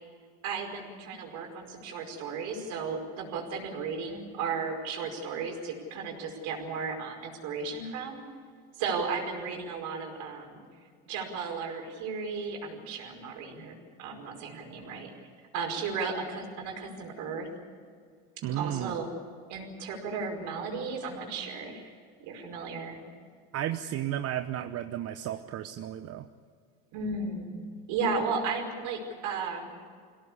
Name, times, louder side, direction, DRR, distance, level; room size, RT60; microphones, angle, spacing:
voice 1, 0.4-8.2 8.7-10.6 11.1-13.7 14.0-15.1 15.5-17.5 18.4-19.1 19.5-21.9 22.2-23.0 26.9-27.5 27.9-29.7, right 5 dB, 65° right, 2 dB, 5.2 m, -34 dB
voice 2, 18.4-19.0 23.5-26.3, right 11 dB, 50° right, 8 dB, 1.0 m, -33 dB
24.0 x 17.0 x 8.4 m, 2.1 s
supercardioid pair, 95°, 32 cm